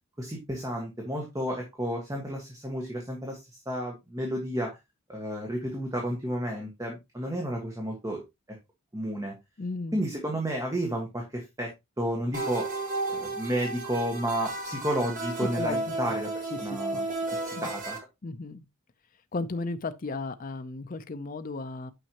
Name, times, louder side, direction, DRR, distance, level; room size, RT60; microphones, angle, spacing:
voice 1, 0.2-4.8 5.1-8.2 8.5-8.6 8.9-9.3 9.9-12.7 13.1-17.1 17.4-18.0, equal, 15° right, 1.5 m, -32 dB
voice 2, 9.6-10.0 15.4-16.1 16.5-16.8 17.6-17.7 18.2-18.6 19.3-21.9, left 3 dB, 40° left, 0.5 m, -34 dB
sound 1, 12.3-18.0, right 2 dB, 40° right, 1.7 m, -33 dB
9.1 x 5.5 x 2.9 m
head